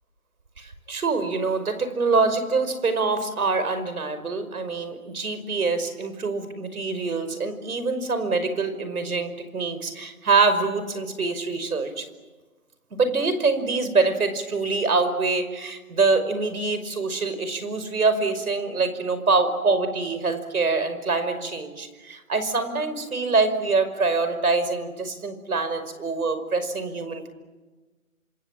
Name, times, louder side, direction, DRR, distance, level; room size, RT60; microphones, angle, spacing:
voice 1, 0.6-12.0 12.9-27.3, right 4 dB, 80° right, 10 dB, 5.5 m, -25 dB
27.0 x 27.0 x 7.5 m, 1.2 s
hypercardioid pair, 170°, 43 cm